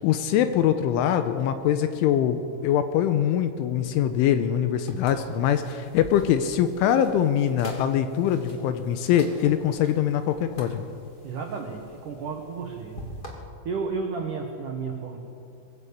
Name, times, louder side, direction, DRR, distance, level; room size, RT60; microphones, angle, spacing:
voice 1, 0.0-10.9, left 10 dB, 80° left, 9 dB, 3.0 m, -23 dB
sound 1, 4.9-13.3, equal, 45° left, 0.6 m, -45 dB
voice 2, 11.2-13.1 13.6-15.2, right 4 dB, 80° right, 2 dB, 1.8 m, -32 dB
21.5 x 15.5 x 8.4 m, 2.4 s
omnidirectional pair, 6.0 m